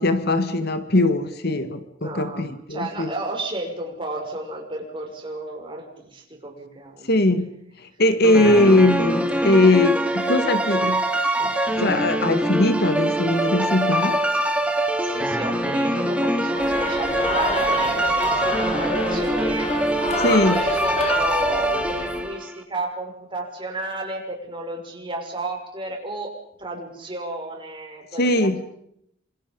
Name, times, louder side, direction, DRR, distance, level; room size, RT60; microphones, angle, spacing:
voice 1, 0.0-3.1 7.1-7.5 8.0-11.0 11.4-14.2 20.2-20.6 28.2-28.6, left 2 dB, 55° left, 10 dB, 1.8 m, -20 dB
voice 2, 2.0-2.4 2.7-7.1 15.0-19.7 20.2-26.3 26.6-28.6, right 2 dB, 25° right, 2 dB, 6.1 m, -33 dB
sound 1, 8.2-22.5, right 1 dB, 5° right, 2.3 m, -23 dB
sound 2, 16.5-22.2, left 2 dB, 35° left, 4.1 m, -28 dB
29.0 x 27.0 x 5.4 m, 0.74 s
head